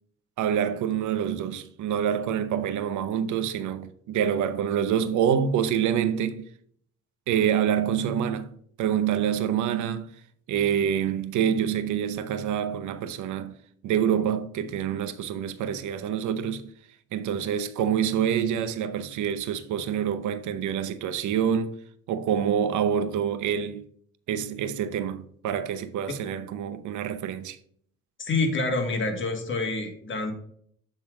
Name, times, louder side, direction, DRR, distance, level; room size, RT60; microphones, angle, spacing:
voice 1, 0.4-6.4 7.3-10.1 10.5-13.6 13.8-16.7 17.1-21.7 22.1-23.9 24.3-27.6, right 8 dB, 75° right, 0.7 m, -26 dB
voice 2, 28.2-30.3, left 3 dB, 40° left, 1.8 m, -27 dB
7.2 x 3.9 x 4.7 m
cardioid pair, 90°, 30 cm